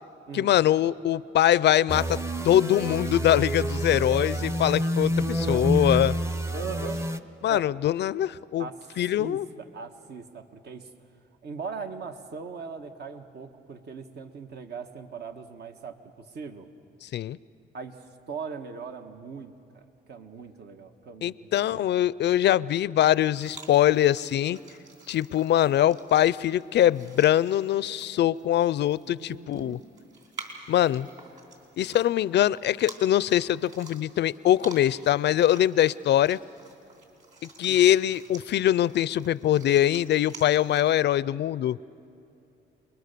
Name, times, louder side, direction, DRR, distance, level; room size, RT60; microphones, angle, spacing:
voice 1, 0.3-2.2 2.4-6.2 7.4-8.7 9.0-9.5 17.0-17.4 21.2-24.6 25.1-29.8 30.7-31.1 31.8-36.4 37.4-41.8, left 12 dB, 60° left, 20 dB, 0.5 m, -23 dB
sound 1, 1.9-7.2, equal, 15° right, 0.8 m, -28 dB
voice 2, 6.5-7.0 7.5-7.6 8.6-10.9 11.4-16.7 17.7-21.9 29.0-29.8 37.7-37.9, right 5 dB, 60° right, 6 dB, 1.4 m, -40 dB
sound 2, 23.1-40.9, right 3 dB, 40° right, 4.3 m, -49 dB
28.5 x 21.5 x 6.8 m, 2.7 s
cardioid pair, 90°, 20 cm